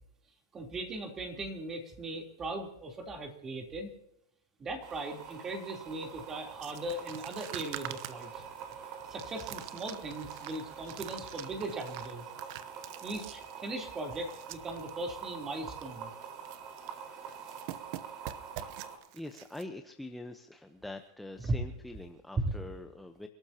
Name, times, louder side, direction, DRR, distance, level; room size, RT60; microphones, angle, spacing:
voice 1, 0.5-3.9 4.6-8.5 9.1-12.2 13.0-16.1 21.4-21.5 22.4-22.5, right 2 dB, 20° right, 3 dB, 3.5 m, -38 dB
sound 1, 4.8-19.0, right 7 dB, 40° right, 4.5 m, -45 dB
sound 2, 6.6-14.9 15.2-15.3 15.6-15.9 16.2-17.0 17.3-19.6, right 13 dB, 55° right, 1.0 m, -46 dB
voice 2, 18.2-23.3, left 2 dB, 5° left, 6 dB, 0.9 m, -45 dB
29.5 x 13.0 x 2.9 m, 0.81 s
hypercardioid pair, 125°, 2 cm